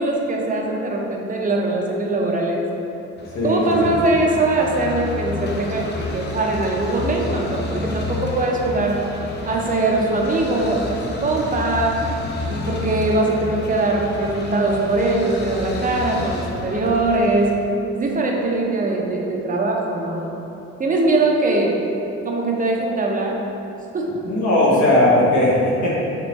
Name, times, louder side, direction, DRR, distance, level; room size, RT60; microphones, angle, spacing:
voice 1, 0.0-2.6 3.4-9.0 9.5-12.0 12.5-17.5 17.9-20.3 20.8-21.8 22.2-23.4 23.9-24.1, right 2 dB, 30° right, -1 dB, 0.5 m, -21 dB
sound 1, 3.2-17.5, left 3 dB, 35° left, 0.5 m, -31 dB
voice 2, 3.3-3.9 24.2-26.0, left 1 dB, 75° left, -6 dB, 0.9 m, -18 dB
3.4 x 2.9 x 3.0 m, 2.9 s
cardioid pair, 90°, 30 cm